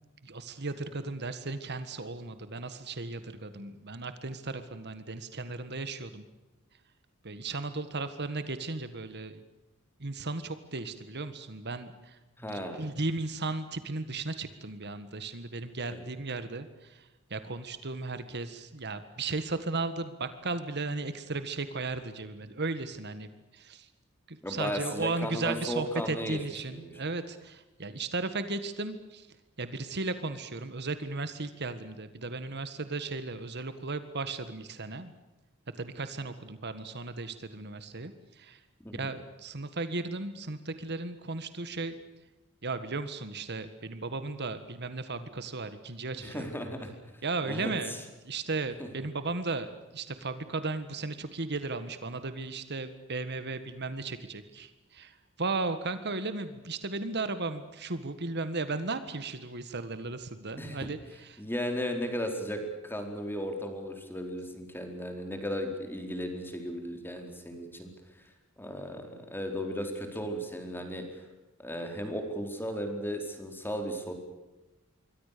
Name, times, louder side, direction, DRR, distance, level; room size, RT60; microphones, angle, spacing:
voice 1, 0.2-6.2 7.2-9.4 10.0-12.2 12.4-17.0 17.3-23.9 24.3-29.3 29.6-35.1 35.8-38.1 38.4-38.6 38.9-42.0 42.6-46.4 47.2-47.9 48.3-49.7 49.9-61.4, right 3 dB, 55° right, 11 dB, 1.7 m, -35 dB
voice 2, 12.4-12.8 15.9-16.0 24.4-26.4 26.7-27.0 38.8-39.1 46.2-46.9 47.4-48.0 48.8-48.9 60.6-60.9 61.4-67.9 68.6-71.0 71.6-74.1, equal, 10° left, 5 dB, 4.4 m, -35 dB
27.0 x 23.5 x 6.9 m, 1.1 s
head